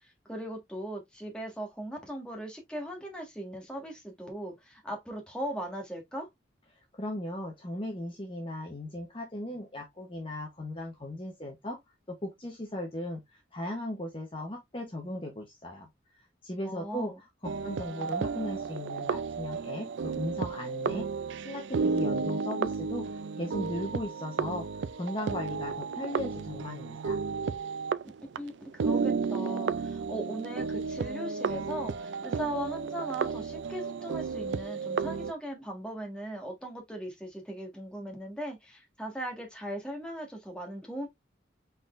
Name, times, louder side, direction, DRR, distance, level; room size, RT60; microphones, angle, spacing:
voice 1, 0.2-6.3 16.6-17.2 28.4-41.1, right 1 dB, 5° left, 1.6 m, -39 dB
voice 2, 6.9-11.8 12.1-15.9 16.4-17.1 17.6-21.1 21.4-24.7 24.9-27.2, left 1 dB, 30° left, 0.9 m, -37 dB
sound 1, 17.4-28.4 28.7-35.3, right 5 dB, 90° right, 0.4 m, -32 dB
4.6 x 3.9 x 2.5 m
head